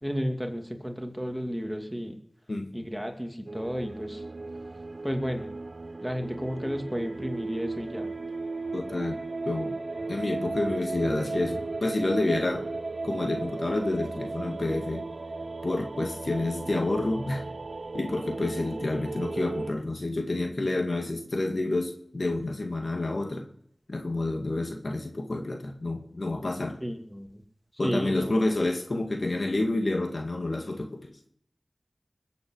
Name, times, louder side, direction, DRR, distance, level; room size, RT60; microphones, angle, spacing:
voice 1, 0.0-2.1 2.7-4.2 5.0-5.5 6.0-8.1 26.8-27.4 27.8-28.4, equal, 5° right, 4 dB, 2.5 m, -32 dB
sound 1, 3.5-19.7, right 3 dB, 65° right, 0.8 m, -36 dB
voice 2, 8.7-9.8 10.1-12.7 13.0-15.1 15.6-17.5 17.9-23.5 23.9-26.8 27.8-31.1, left 2 dB, 65° left, 3 dB, 2.2 m, -29 dB
20.5 x 8.5 x 6.4 m, 0.66 s
wide cardioid pair, 40°, 0 cm